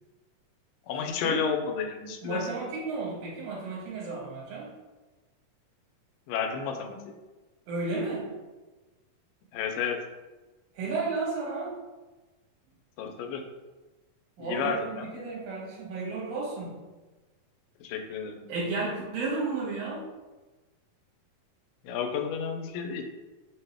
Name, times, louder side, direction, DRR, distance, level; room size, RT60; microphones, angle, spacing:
voice 1, 0.9-2.5 6.3-7.2 9.5-10.0 13.0-13.4 14.4-15.1 17.8-18.4 21.8-23.1, left 6 dB, 85° left, 4 dB, 2.2 m, -31 dB
voice 2, 2.2-4.7 7.7-8.3 10.7-11.8 14.4-16.8 18.5-20.1, right 3 dB, 90° right, -5 dB, 3.1 m, -33 dB
5.9 x 2.2 x 3.4 m, 1.2 s
omnidirectional pair, 3.9 m